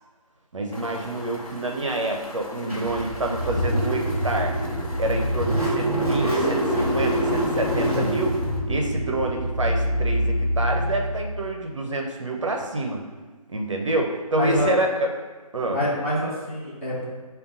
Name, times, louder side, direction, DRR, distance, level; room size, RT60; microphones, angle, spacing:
voice 1, 0.5-4.5 5.0-13.0 13.5-14.9 15.5-15.8, right 2 dB, 55° right, 2 dB, 0.6 m, -27 dB
sound 1, 0.7-8.6, left 2 dB, 60° left, 0.9 m, -39 dB
Car / Engine starting, 2.7-11.4, equal, ahead, 0.7 m, -25 dB
voice 2, 14.3-14.7 15.7-17.0, equal, 20° left, -8 dB, 1.0 m, -26 dB
5.1 x 2.2 x 3.9 m, 1.3 s
figure-of-eight pair, 165°, 19 cm